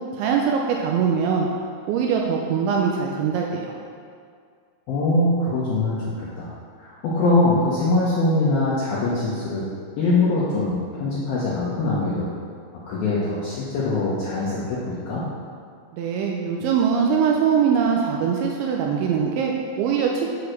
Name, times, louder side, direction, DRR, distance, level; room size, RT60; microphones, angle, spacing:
voice 1, 0.0-1.5 1.9-3.7 15.9-20.3, right 6 dB, 85° right, 0 dB, 2.8 m, -22 dB
voice 2, 4.9-6.5 6.8-9.7 10.0-12.3 12.9-15.2, left 2 dB, 75° left, -8 dB, 2.2 m, -22 dB
8.5 x 4.8 x 6.4 m, 2.2 s
omnidirectional pair, 5.8 m